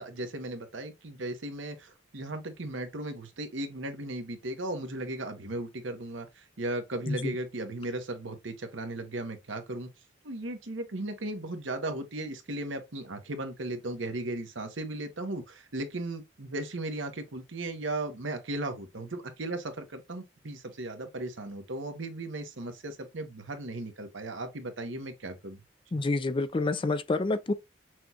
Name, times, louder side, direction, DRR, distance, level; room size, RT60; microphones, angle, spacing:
voice 1, 0.0-9.9 10.2-25.6, right 2 dB, 75° right, 1.0 m, -36 dB
voice 2, 25.9-27.5, left 2 dB, 30° left, 0.4 m, -28 dB
6.1 x 2.3 x 2.8 m
head